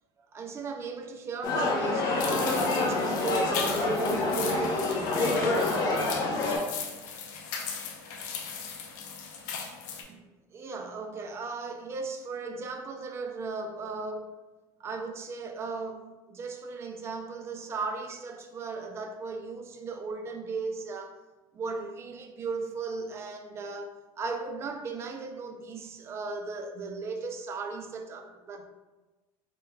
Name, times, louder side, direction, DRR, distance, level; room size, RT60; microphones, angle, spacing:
voice 1, 0.3-2.2 2.5-5.2 10.1-10.2 10.5-14.3 14.8-21.2 21.5-28.6, right 4 dB, 25° right, 0.4 m, -36 dB
sound 1, 1.4-6.6, left 2 dB, 40° left, 0.9 m, -27 dB
sound 2, 2.2-10.0, left 6 dB, 80° left, 0.7 m, -38 dB
4.4 x 3.4 x 2.3 m
cardioid pair, 135°, 10 cm